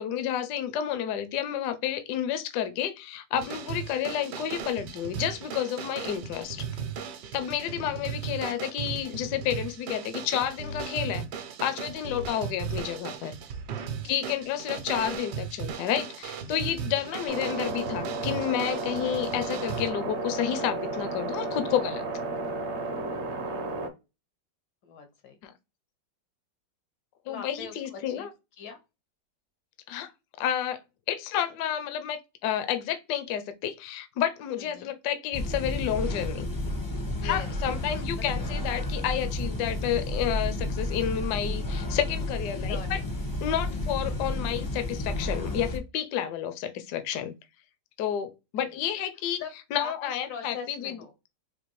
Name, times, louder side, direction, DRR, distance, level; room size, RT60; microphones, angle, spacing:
voice 1, 0.0-6.7 7.3-11.3 11.6-13.3 14.1-22.0 27.3-28.3 29.9-30.1 30.4-30.8 31.1-36.5 37.2-42.8 43.4-47.4 48.0-49.4 49.7-50.9, left 10 dB, 75° left, 1.0 m, -30 dB
sound 1, 3.4-19.9, right 6 dB, 75° right, 1.2 m, -37 dB
voice 2, 13.8-14.3 14.7-14.8 17.1-17.3 23.4-23.9 24.8-25.4 27.3-28.3 28.6-28.8 34.6-34.9 37.2-38.3 42.6-43.1 43.6-44.1 48.6-48.8 49.4-49.5 49.8-51.1, left 6 dB, 90° left, 1.8 m, -43 dB
sound 2, 17.3-23.9, right 3 dB, 55° right, 0.7 m, -33 dB
sound 3, 35.3-45.8, left 1 dB, 30° left, 0.4 m, -31 dB
4.2 x 2.6 x 3.0 m
omnidirectional pair, 2.0 m